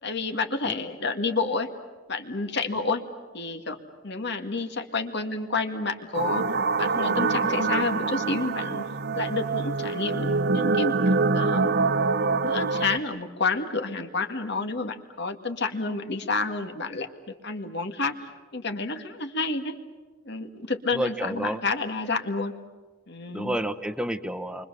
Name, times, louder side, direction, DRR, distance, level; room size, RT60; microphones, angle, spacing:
voice 1, 0.0-1.7 2.1-3.0 3.3-3.8 4.0-6.5 6.8-8.9 9.1-11.7 12.2-19.8 20.2-22.5 23.1-23.6, left 3 dB, 60° left, 5 dB, 2.1 m, -30 dB
sound 1, 6.1-13.0, right 4 dB, 55° right, 0.8 m, -25 dB
voice 2, 20.9-21.6 23.3-24.7, right 1 dB, 5° right, 9 dB, 1.0 m, -29 dB
30.0 x 24.5 x 6.9 m, 1.3 s
head